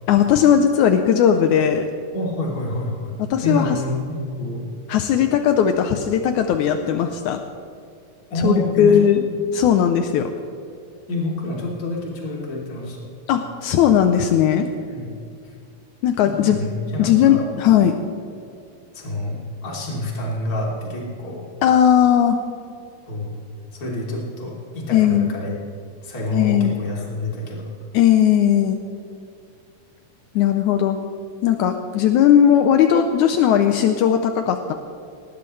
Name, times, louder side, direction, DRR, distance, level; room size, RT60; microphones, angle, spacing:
voice 1, 0.1-1.9 3.3-3.8 4.9-7.4 8.4-9.2 9.5-10.3 13.3-14.7 16.0-16.6 17.0-17.9 21.6-22.4 24.9-25.3 26.3-26.8 27.9-28.8 30.4-31.0 31.4-34.7, left 9 dB, 80° left, 6 dB, 1.8 m, -17 dB
voice 2, 2.1-3.1 3.4-4.6 8.3-9.0 11.1-13.1 14.9-15.1 16.4-17.5 18.9-19.4 19.6-21.4 23.1-23.3 23.8-25.5 26.0-27.7, left 1 dB, 25° left, -4 dB, 3.4 m, -27 dB
20.0 x 19.5 x 3.3 m, 2.4 s
omnidirectional pair, 4.3 m